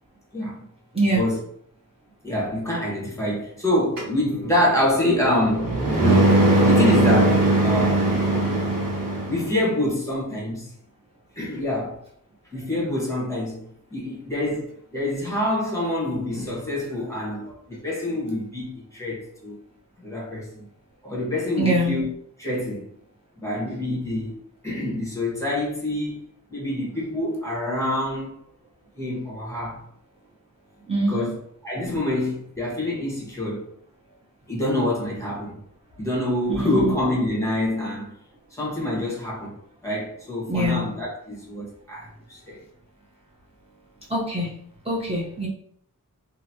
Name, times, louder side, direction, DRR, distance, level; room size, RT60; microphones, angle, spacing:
voice 1, 0.3-0.6 1.1-1.4 2.2-8.2 9.3-10.7 11.3-12.0 12.5-13.7 13.9-19.6 20.0-20.7 21.0-22.1 22.4-22.9 23.4-28.3 29.0-29.8 31.1-31.4 31.6-33.7 34.5-35.6 36.0-38.1 38.5-39.6 39.8-42.6, left 1 dB, 10° left, 1.3 m, -26 dB
sound 1, 4.0-9.5, right 2 dB, 85° right, 0.9 m, -20 dB
voice 2, 21.6-21.9 30.9-31.3 36.5-36.9 40.5-40.8 44.1-44.5 44.8-45.5, right 1 dB, 15° right, 0.9 m, -23 dB
3.0 x 2.6 x 2.8 m
wide cardioid pair, 50°, 33 cm